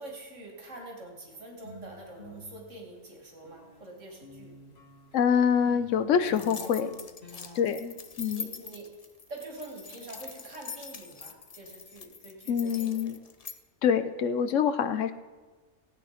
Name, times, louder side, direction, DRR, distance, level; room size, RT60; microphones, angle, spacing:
voice 1, 0.0-4.6 7.3-7.6 8.3-9.0 9.3-13.3, right 2 dB, 70° right, 1 dB, 2.7 m, -45 dB
sound 1, 1.6-3.8 4.2-8.1, left 1 dB, 55° left, 2.1 m, -50 dB
voice 2, 5.1-7.0 7.5-8.5 12.5-13.2 13.8-15.1, left 7 dB, 75° left, 11 dB, 1.1 m, -26 dB
sound 2, 6.3-13.6, left 5 dB, 35° left, 0.6 m, -43 dB
16.0 x 8.9 x 5.1 m, 1.3 s
omnidirectional pair, 1.3 m